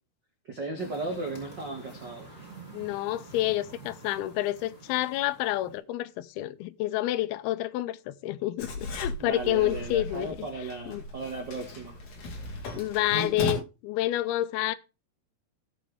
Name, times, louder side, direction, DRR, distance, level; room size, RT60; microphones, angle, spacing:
voice 1, 0.4-2.3 9.2-12.0, right 3 dB, 60° right, 1.1 m, -36 dB
sound 1, 0.8-5.8, right 3 dB, 20° left, 6.3 m, -48 dB
voice 2, 2.7-10.5 10.9-11.0 12.7-14.8, left 15 dB, 80° left, 2.4 m, -29 dB
Writing, 8.6-13.5, left 2 dB, 50° left, 2.9 m, -36 dB
17.5 x 6.1 x 3.5 m
omnidirectional pair, 4.8 m